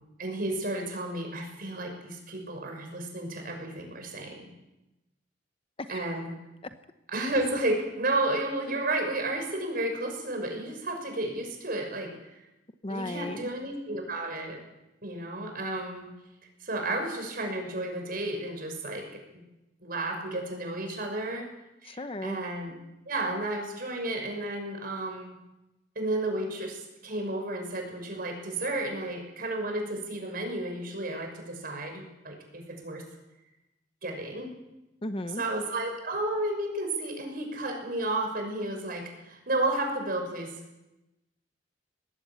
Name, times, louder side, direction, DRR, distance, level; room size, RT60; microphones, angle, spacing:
voice 1, 0.2-4.5 5.9-6.3 7.1-12.4 12.9-14.6 15.0-16.1 16.6-19.2 19.8-21.5 21.8-22.7 23.1-25.4 25.9-33.0 34.0-34.5 35.4-40.6, right 2 dB, 50° right, 3 dB, 6.2 m, -32 dB
voice 2, 5.8-6.2 12.8-13.5 21.8-22.4 35.0-35.4, left 1 dB, 30° left, 9 dB, 0.8 m, -35 dB
21.0 x 16.0 x 8.3 m, 0.97 s
head